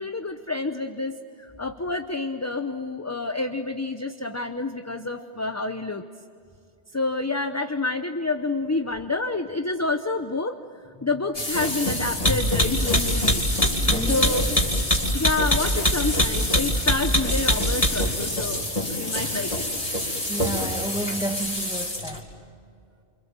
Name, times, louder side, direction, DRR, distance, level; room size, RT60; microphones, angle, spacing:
voice 1, 0.0-6.0 6.9-10.6 11.0-13.4 14.1-14.6 15.1-18.6 18.9-19.7, left 3 dB, 15° left, 7 dB, 0.7 m, -28 dB
sound 1, 11.3-22.2, equal, 30° left, 3.6 m, -24 dB
voice 2, 13.9-14.6 20.3-22.2, right 1 dB, 5° right, 4 dB, 1.6 m, -31 dB
29.0 x 27.0 x 7.4 m, 2.4 s
omnidirectional pair, 1.1 m